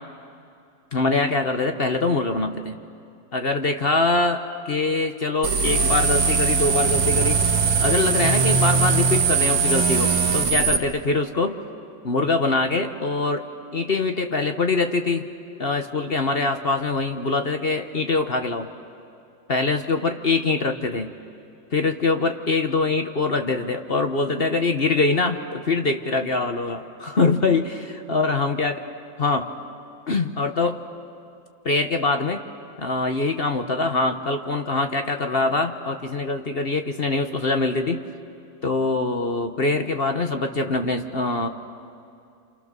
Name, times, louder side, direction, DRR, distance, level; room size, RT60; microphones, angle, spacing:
voice 1, 0.9-2.8 3.3-7.4 7.8-11.6 12.0-13.5 13.7-15.3 15.6-18.7 19.5-21.1 21.7-28.8 29.2-29.5 30.1-30.8 31.6-32.4 32.8-38.0 38.6-41.5, left 3 dB, 40° left, 6 dB, 1.0 m, -23 dB
sound 1, 5.4-10.8, right 5 dB, 85° right, 2.4 m, -20 dB
28.5 x 28.5 x 6.8 m, 2.5 s
omnidirectional pair, 2.1 m